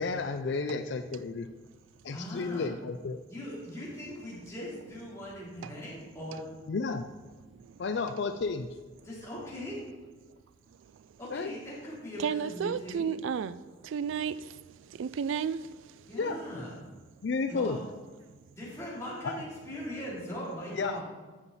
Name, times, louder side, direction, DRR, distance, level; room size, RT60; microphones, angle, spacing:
voice 1, 0.0-1.5 2.0-3.2 6.7-7.1 7.8-8.7 11.3-11.5 16.2-16.4 17.2-17.8 19.2-19.4 20.8-21.0, left 4 dB, 65° left, 0.4 m, -32 dB
voice 2, 2.1-2.7 3.3-6.4 9.0-9.8 11.2-13.1 16.1-16.8 17.5-17.8 18.5-21.0, equal, 15° left, 3.4 m, -40 dB
voice 3, 12.2-16.1, right 7 dB, 90° right, 0.3 m, -33 dB
12.5 x 7.2 x 4.1 m
head